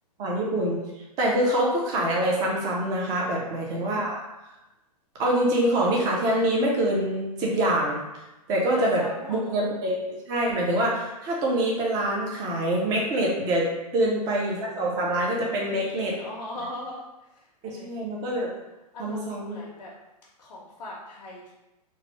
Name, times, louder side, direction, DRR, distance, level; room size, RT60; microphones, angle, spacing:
voice 1, 0.2-0.8 1.2-4.2 5.2-8.0 8.5-9.0 9.3-10.0 10.3-13.7 13.9-16.2 17.8-18.5 19.0-19.6, right 1 dB, 20° right, -2 dB, 0.4 m, -25 dB
voice 2, 3.3-3.9 8.7-9.5 13.9-14.3 15.6-18.0 18.9-19.9 20.4-21.5, left 1 dB, 90° left, -3 dB, 0.7 m, -41 dB
3.0 x 2.1 x 2.9 m, 0.98 s
hypercardioid pair, 150°, 21 cm